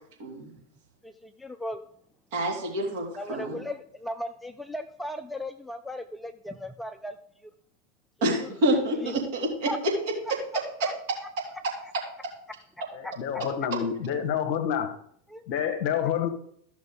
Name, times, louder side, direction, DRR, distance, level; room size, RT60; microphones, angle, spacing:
voice 1, 0.2-0.5 2.3-3.6 8.2-9.9 10.3-10.4 10.8-10.9 11.4-11.5, right 1 dB, 50° right, 2.7 m, -27 dB
voice 2, 1.0-1.8 3.2-7.1 8.4-8.5 9.0-9.1 9.7-9.8 13.0-13.1 15.3-15.4 15.9-16.3, left 1 dB, 5° left, 0.4 m, -37 dB
voice 3, 12.9-15.0 15.5-16.3, left 8 dB, 45° left, 1.0 m, -28 dB
13.5 x 6.0 x 3.8 m
figure-of-eight pair, 90°, 0 cm